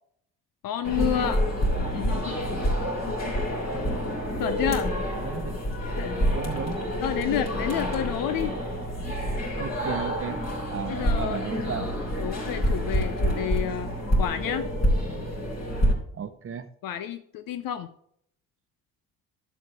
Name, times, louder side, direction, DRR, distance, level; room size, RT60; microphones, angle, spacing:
voice 1, 0.6-1.5 1.9-2.5 3.1-3.3 4.4-4.9 6.0-6.2 7.0-8.5 9.1-9.2 10.9-11.4 12.2-13.9 14.2-14.7 16.8-17.9, left 10 dB, 55° left, 11 dB, 0.7 m, -30 dB
sound 1, 0.8-15.9, equal, 40° left, 3.8 m, -27 dB
voice 2, 5.2-5.6 6.2-6.8 9.6-10.4 10.7-11.9 16.1-16.7, right 7 dB, 30° right, 10 dB, 1.0 m, -34 dB
11.5 x 6.3 x 3.6 m, 0.67 s
hypercardioid pair, 50°, 42 cm